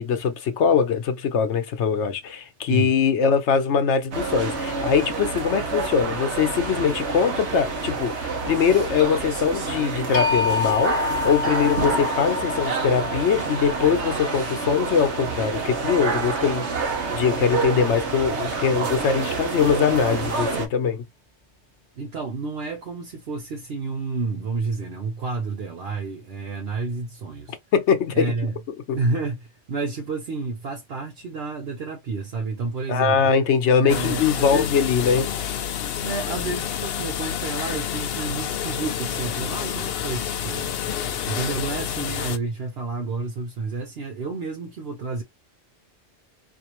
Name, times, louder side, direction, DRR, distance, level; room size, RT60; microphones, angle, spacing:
voice 1, 0.0-16.7 17.1-21.0 27.7-28.3 28.9-29.0 32.9-35.3, left 6 dB, 85° left, 1.1 m, -22 dB
sound 1, 4.1-20.7, right 4 dB, 85° right, 1.3 m, -28 dB
sound 2, 10.1-16.1, left 5 dB, 40° left, 1.2 m, -29 dB
voice 2, 22.0-27.6 28.1-28.6 28.9-33.3 33.8-34.8 36.0-40.8 41.2-45.2, right 3 dB, 65° right, 1.0 m, -30 dB
sound 3, 33.9-42.4, left 9 dB, 65° left, 0.8 m, -29 dB
4.4 x 2.6 x 3.0 m
omnidirectional pair, 1.1 m